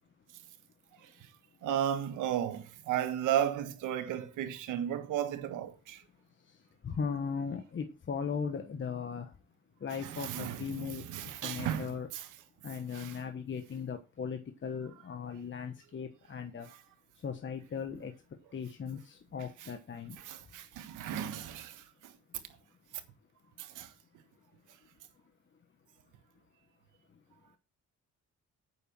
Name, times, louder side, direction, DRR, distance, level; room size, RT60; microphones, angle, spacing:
voice 1, 1.6-6.0 10.0-12.3 12.9-13.1 20.2-22.1 23.6-23.9, right 10 dB, 90° right, 1.5 m, -34 dB
voice 2, 6.8-9.3 9.8-12.1 12.6-16.7 17.2-18.1 18.5-20.2, left 6 dB, 40° left, 1.3 m, -38 dB
8.9 x 6.9 x 6.1 m
cardioid pair, 90°, 30 cm